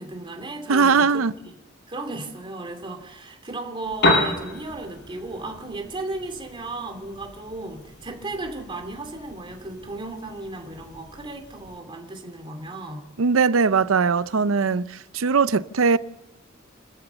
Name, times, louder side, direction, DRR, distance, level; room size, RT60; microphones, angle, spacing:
voice 1, 0.0-1.5 1.9-13.0, right 2 dB, 25° right, 2.6 m, -35 dB
voice 2, 0.7-1.3 13.2-16.0, right 5 dB, 90° right, 0.6 m, -20 dB
Piano, 3.8-11.8, left 2 dB, 55° left, 6.5 m, -31 dB
29.0 x 14.0 x 6.9 m
head